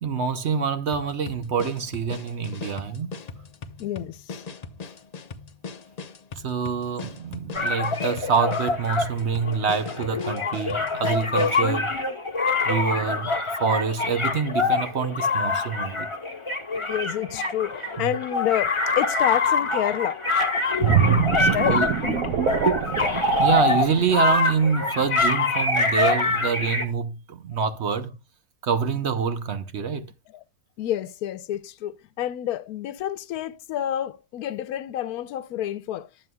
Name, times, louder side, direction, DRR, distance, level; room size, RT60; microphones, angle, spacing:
voice 1, 0.0-3.2 6.4-11.9 12.6-16.1 18.0-18.1 21.6-21.9 23.4-28.2 28.6-30.1, right 6 dB, 55° right, 0.9 m, -26 dB
sound 1, 0.9-11.7, left 5 dB, 45° left, 0.5 m, -40 dB
voice 2, 3.8-4.4 10.5-10.6 16.8-20.2 21.5-22.3 30.3-30.4 30.8-36.1, left 11 dB, 85° left, 1.1 m, -29 dB
sound 2, 7.5-26.9, left 3 dB, 20° left, 1.2 m, -25 dB
sound 3, 20.8-24.4 24.8-25.0, right 8 dB, 75° right, 1.1 m, -24 dB
11.0 x 7.6 x 2.3 m
omnidirectional pair, 1.5 m